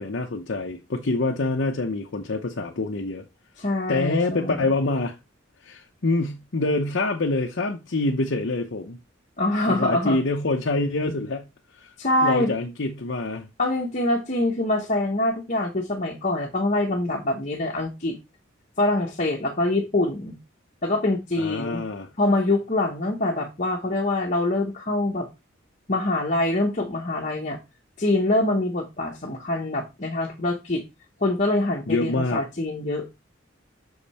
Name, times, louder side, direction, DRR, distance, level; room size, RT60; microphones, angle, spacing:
voice 1, 0.0-3.2 3.9-5.1 5.6-9.0 9.7-11.5 11.8-11.9 12.2-13.5 21.4-22.1 31.9-32.4, left 2 dB, 60° left, 0.8 m, -26 dB
voice 2, 3.6-4.6 9.4-10.2 12.0-12.5 13.6-18.1 18.8-20.3 20.8-21.8 22.2-25.3 25.9-27.6 28.0-30.8 31.2-33.0, left 2 dB, 40° left, 1.2 m, -24 dB
6.5 x 5.2 x 4.2 m
head